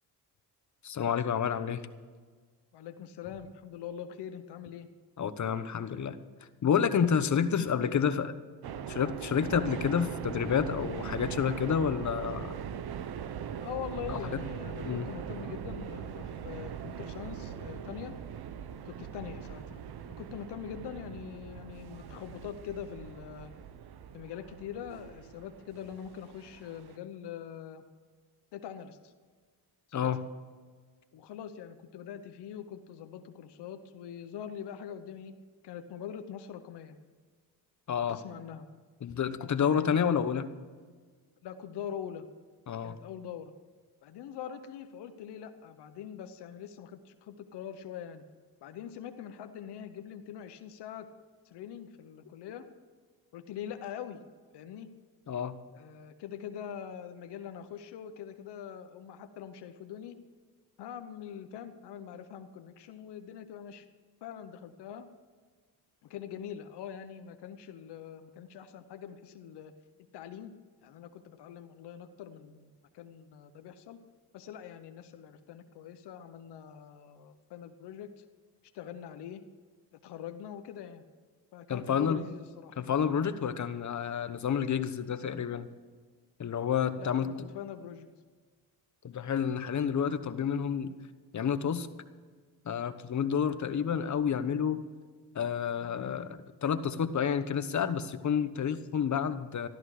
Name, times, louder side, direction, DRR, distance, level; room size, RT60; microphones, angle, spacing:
voice 1, 0.8-1.9 5.2-6.2 6.6-8.4 8.9-12.6 14.1-14.4 14.8-15.1 29.9-30.2 37.9-38.2 39.0-40.5 42.7-43.0 55.3-55.6 81.7-82.3 82.8-85.7 86.4-87.4 89.0-91.0 91.3-91.9 92.6-94.8 95.3-99.7, left 7 dB, 45° left, 11 dB, 1.0 m, -29 dB
voice 2, 2.7-4.9 7.7-8.1 13.6-18.2 18.8-19.8 20.1-23.5 24.1-27.8 28.5-29.1 29.9-30.1 31.1-35.3 35.6-37.0 38.0-38.7 39.6-40.0 41.4-42.3 42.8-43.5 44.0-48.2 48.6-51.1 51.4-52.7 53.3-54.2 54.5-54.9 55.7-60.2 60.8-63.9 64.2-65.1 66.0-69.7 70.1-70.5 70.8-74.0 74.3-78.2 78.7-79.4 80.0-81.0 81.5-82.8 87.0-88.1, left 9 dB, 90° left, 8 dB, 1.0 m, -43 dB
sound 1, 8.6-27.0, right 8 dB, 70° right, 0.9 m, -41 dB
14.0 x 13.0 x 4.9 m, 1.5 s
cardioid pair, 95°, 39 cm